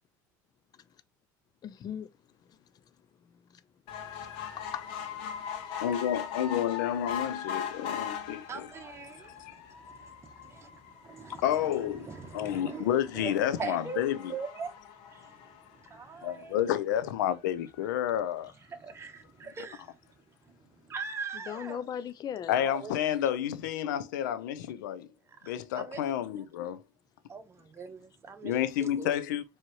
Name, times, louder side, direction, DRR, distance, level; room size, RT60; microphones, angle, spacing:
voice 1, 1.6-2.1 2.5-2.6 3.2-3.6 4.6-4.9 11.3-11.4 21.5-22.6, left 9 dB, 40° left, 0.5 m, -38 dB
sound 1, 3.9-16.5 17.0-17.1 17.4-17.5 17.8-17.9, left 8 dB, 65° left, 1.1 m, -40 dB
voice 2, 5.8-8.7 9.5-9.6 11.4-14.3 16.2-18.5 22.5-25.1 25.4-26.8 28.4-29.4, left 11 dB, 85° left, 0.6 m, -30 dB
voice 3, 8.5-9.5 9.8-9.9 10.2-10.7 11.0-14.7 15.1-15.3 15.8-16.6 18.7-20.0 20.4-21.8 22.4-23.0 25.4-26.0 27.3-28.5 28.8-29.1, right 5 dB, 25° right, 1.1 m, -42 dB
4.6 x 2.9 x 3.0 m
hypercardioid pair, 85°, 10 cm